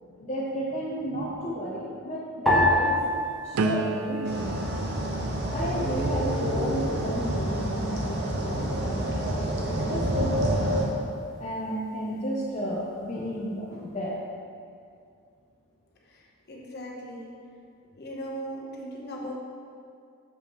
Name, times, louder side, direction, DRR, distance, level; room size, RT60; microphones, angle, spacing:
voice 1, 0.0-3.0 3.4-4.6 5.5-10.8 11.4-14.2, equal, 30° left, -6 dB, 0.6 m, -33 dB
sound 1, 2.5-5.0 5.2-6.1 6.8-7.2, left 1 dB, ahead, 0.9 m, -27 dB
sound 2, 3.5-9.4 9.9-10.4, right 3 dB, 80° right, 0.4 m, -35 dB
sound 3, 4.2-10.9, right 1 dB, 50° right, 0.8 m, -28 dB
voice 2, 16.1-17.3 18.0-19.3, equal, 50° left, -3 dB, 1.0 m, -38 dB
6.9 x 5.5 x 3.0 m, 2.4 s
head